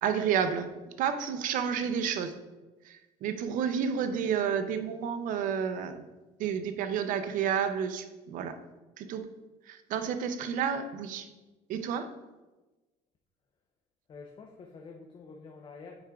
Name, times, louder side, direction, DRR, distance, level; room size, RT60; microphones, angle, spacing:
voice 1, 0.0-2.4 2.8-6.1 6.4-8.6 9.0-9.3 9.7-11.3 11.7-12.1, right 7 dB, 65° right, 9 dB, 0.6 m, -31 dB
voice 2, 14.1-16.0, left 4 dB, 35° left, 2 dB, 0.5 m, -48 dB
8.7 x 4.8 x 2.3 m, 1.1 s
cardioid pair, 115°, 15 cm